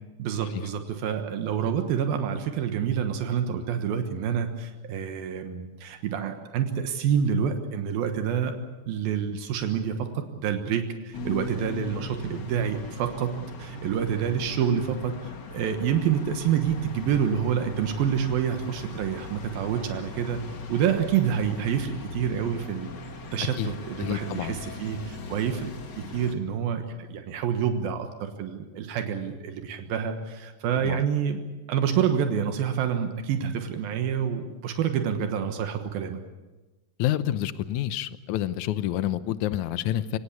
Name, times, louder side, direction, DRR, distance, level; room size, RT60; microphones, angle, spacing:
voice 1, 0.2-8.5 8.9-13.3 13.6-15.1 15.5-20.4 20.7-22.9 23.3-31.4 31.7-36.2, right 8 dB, 80° right, 6 dB, 3.2 m, -27 dB
sound 1, 11.1-26.3, left 2 dB, 40° left, 1.7 m, -40 dB
voice 2, 24.0-24.6 30.8-31.0 37.0-40.2, left 12 dB, 70° left, 13 dB, 1.9 m, -28 dB
25.5 x 17.5 x 8.4 m, 1.2 s
omnidirectional pair, 4.1 m